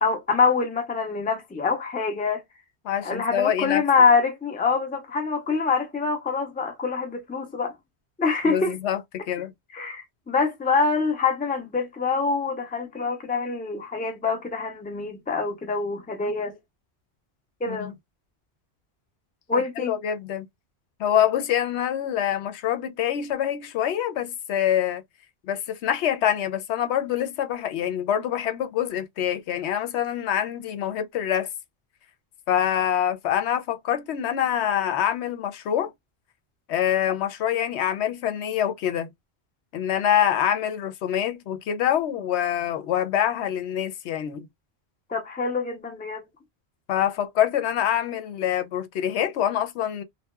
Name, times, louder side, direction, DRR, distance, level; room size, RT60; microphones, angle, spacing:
voice 1, 0.0-2.4 3.0-7.7 8.2-8.7 9.7-16.5 17.6-17.9 19.5-19.9 45.1-46.2, left 4 dB, 15° left, 0.4 m, -25 dB
voice 2, 2.8-3.8 8.5-9.5 17.7-17.9 19.5-20.5 21.0-25.0 25.5-31.5 32.5-35.9 36.7-39.1 39.7-44.5 46.9-50.0, left 10 dB, 80° left, 0.9 m, -25 dB
2.8 x 2.2 x 2.2 m
omnidirectional pair, 1.1 m